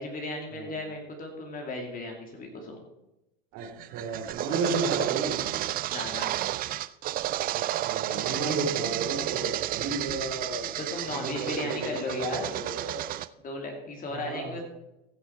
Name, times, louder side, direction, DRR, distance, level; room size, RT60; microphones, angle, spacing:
voice 1, 0.0-2.8 5.9-6.3 10.8-12.5 13.4-14.6, left 2 dB, 30° left, 2 dB, 2.8 m, -35 dB
voice 2, 3.5-5.5 7.5-10.7 11.1-13.0 14.1-14.6, right 3 dB, 60° right, 1 dB, 3.7 m, -33 dB
sound 1, 3.6-13.3, right 14 dB, 30° right, 0.4 m, -31 dB
15.5 x 6.4 x 4.5 m, 0.91 s
supercardioid pair, 110°, 29 cm